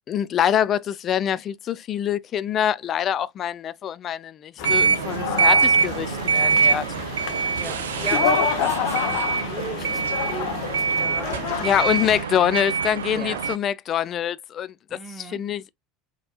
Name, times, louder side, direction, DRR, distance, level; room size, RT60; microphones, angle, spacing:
voice 1, 0.1-6.9 11.6-15.7, left 9 dB, 40° left, 0.4 m, -25 dB
sound 1, 4.6-12.2, left 8 dB, 60° left, 0.9 m, -29 dB
sound 2, 4.6-13.6, right 5 dB, 75° right, 0.4 m, -24 dB
voice 2, 4.8-5.2 6.3-7.1 7.6-11.7 13.1-13.5 14.9-15.4, right 2 dB, 5° right, 1.3 m, -39 dB
4.1 x 2.9 x 2.3 m
figure-of-eight pair, 75°, 0 cm